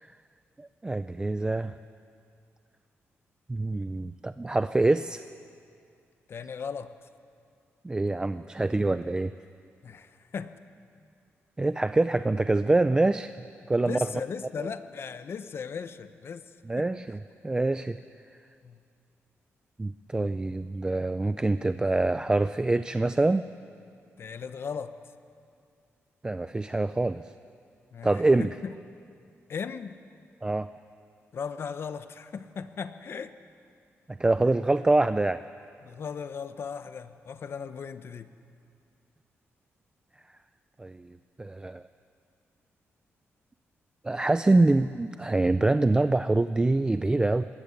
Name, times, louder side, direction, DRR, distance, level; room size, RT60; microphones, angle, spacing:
voice 1, 0.6-1.7 3.5-5.2 7.8-9.3 11.6-13.3 13.7-14.1 14.6-14.7 16.7-18.0 19.8-23.5 26.2-27.2 28.0-28.5 30.4-30.7 34.1-35.4 40.8-41.8 44.0-47.5, right 2 dB, 15° right, 12 dB, 0.4 m, -25 dB
voice 2, 6.3-6.9 9.8-10.6 13.8-16.5 16.8-16.9 18.6-18.8 24.2-24.9 27.9-28.7 29.5-30.0 31.3-33.3 35.8-38.3, left 6 dB, 55° left, 11 dB, 1.0 m, -37 dB
19.5 x 18.5 x 8.4 m, 2.4 s
cardioid pair, 105°, 5 cm